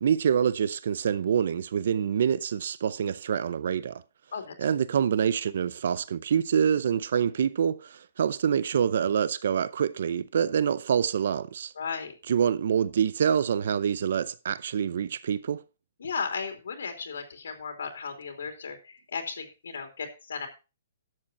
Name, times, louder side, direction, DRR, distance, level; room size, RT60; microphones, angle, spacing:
voice 1, 0.0-4.0 4.6-11.7 12.3-15.6, right 8 dB, 50° right, 0.5 m, -26 dB
voice 2, 11.7-12.2 16.0-20.5, left 5 dB, 90° left, 3.1 m, -35 dB
12.0 x 7.7 x 4.1 m
hypercardioid pair, 180°, 0 cm